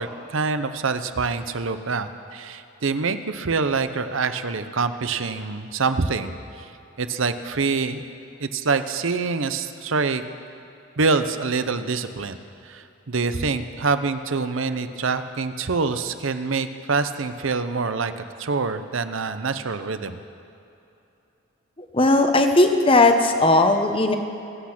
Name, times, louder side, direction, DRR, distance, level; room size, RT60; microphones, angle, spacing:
voice 1, 0.0-6.7 7.0-8.1 8.4-10.2 11.0-12.4 12.6-20.2, right 4 dB, 70° right, 10 dB, 0.8 m, -25 dB
voice 2, 21.8-24.2, left 2 dB, 25° left, 6 dB, 1.0 m, -17 dB
24.5 x 8.5 x 6.0 m, 2.9 s
head